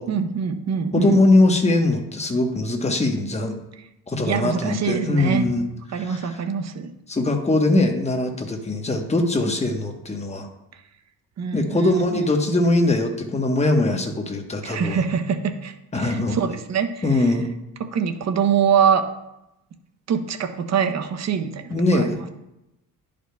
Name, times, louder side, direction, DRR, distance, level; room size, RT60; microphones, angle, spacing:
voice 1, 0.1-1.2 4.2-5.5 5.9-6.9 11.4-12.2 12.5-12.6 14.6-17.3 17.8-19.0 20.1-22.1, right 7 dB, 45° right, 8 dB, 0.7 m, -24 dB
voice 2, 0.9-3.6 4.1-5.7 5.9-6.4 7.1-10.5 11.5-15.0 15.9-16.4 17.0-17.5 21.7-22.3, left 2 dB, 20° left, 3 dB, 1.0 m, -21 dB
11.0 x 5.1 x 2.3 m, 0.90 s
cardioid pair, 95°, 37 cm